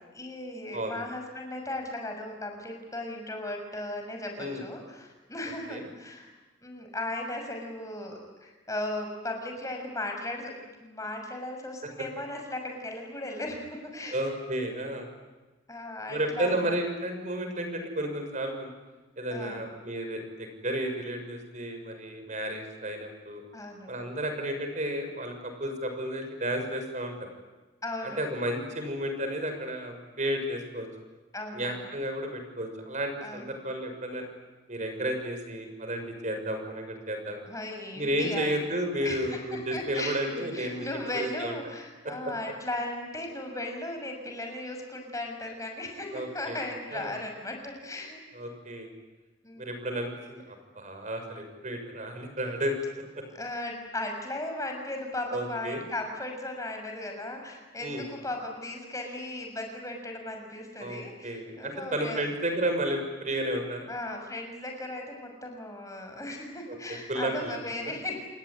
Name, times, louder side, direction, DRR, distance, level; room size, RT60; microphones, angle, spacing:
voice 1, 0.0-6.3 6.6-10.5 10.8-14.2 15.7-16.8 19.3-19.7 23.5-23.9 27.8-28.2 31.3-31.9 33.2-33.6 37.5-38.6 39.0-48.2 49.4-49.9 53.3-62.2 63.9-68.2, left 1 dB, 15° left, 3 dB, 6.4 m, -37 dB
voice 2, 14.1-15.1 16.1-18.7 19.2-23.4 23.9-27.3 28.0-30.9 31.5-34.3 34.7-37.4 37.9-40.9 41.1-41.5 46.1-46.6 46.9-47.2 48.3-48.9 49.6-52.7 53.1-53.2 55.3-55.8 57.8-58.1 60.8-63.9 66.7-67.6, right 1 dB, 40° right, 6 dB, 6.3 m, -32 dB
29.0 x 20.5 x 9.9 m, 1.2 s
head